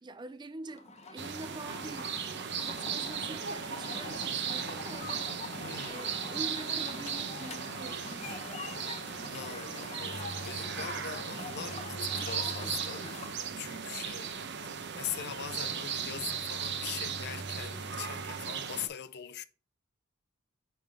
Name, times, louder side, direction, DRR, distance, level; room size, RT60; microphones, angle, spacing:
voice 1, 0.0-2.2 2.6-5.6 5.8-8.5 13.4-14.2, right 2 dB, 20° right, 0.4 m, -46 dB
sound 1, 0.7-13.4, left 3 dB, 35° left, 0.8 m, -44 dB
sound 2, 1.2-18.9, right 7 dB, 60° right, 0.8 m, -37 dB
voice 2, 5.6-6.1 9.3-13.1 13.6-14.3 14.9-19.4, left 9 dB, 55° left, 0.5 m, -41 dB
9.9 x 3.8 x 3.5 m
head